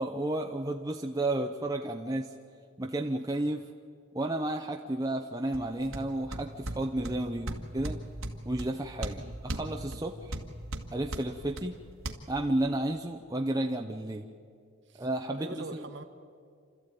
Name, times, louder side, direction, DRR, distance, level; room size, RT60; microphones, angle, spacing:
voice 1, 0.0-2.3 2.8-3.6 4.1-8.0 8.5-10.4 10.9-11.7 12.3-14.3 15.0-15.8, right 1 dB, 15° right, 3 dB, 0.7 m, -32 dB
sound 1, 5.5-12.1, right 1 dB, 75° right, 1.7 m, -39 dB
voice 2, 15.3-16.0, right 2 dB, 55° right, 6 dB, 1.3 m, -44 dB
28.5 x 13.5 x 9.2 m, 2.3 s
head